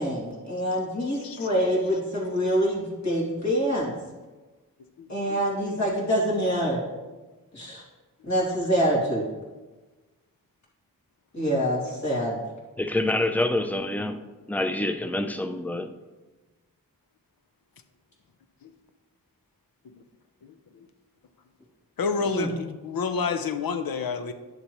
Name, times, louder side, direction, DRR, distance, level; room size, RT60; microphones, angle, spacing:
voice 1, 0.0-4.0 5.1-6.8 7.5-7.8 8.2-9.2 11.3-12.4 22.3-22.5, equal, 50° left, 2.7 m, -25 dB
voice 2, 12.8-14.2 14.5-15.9, left 1 dB, 5° left, 0.5 m, -26 dB
voice 3, 22.0-24.3, left 5 dB, 80° left, 0.8 m, -28 dB
10.0 x 6.7 x 3.1 m
wide cardioid pair, 95°, 34 cm